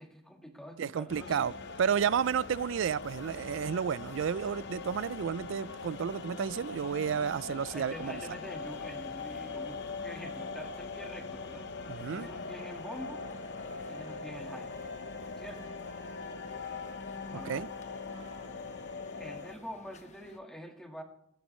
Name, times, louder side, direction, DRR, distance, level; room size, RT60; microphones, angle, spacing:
voice 1, 0.0-1.6 7.6-11.7 12.1-13.2 13.9-14.9 15.4-15.6 17.3-17.7 19.2-21.0, equal, 5° left, 1.8 m, -46 dB
voice 2, 0.8-1.5 1.8-8.2 11.9-12.3 17.5-17.7, right 7 dB, 70° right, 0.3 m, -31 dB
sound 1, 1.1-19.6, left 4 dB, 60° left, 1.0 m, -41 dB
sound 2, 1.6-20.4, left 2 dB, 35° left, 1.0 m, -56 dB
Trumpet, 11.8-19.8, right 3 dB, 20° right, 2.5 m, -61 dB
17.5 x 12.5 x 3.2 m
head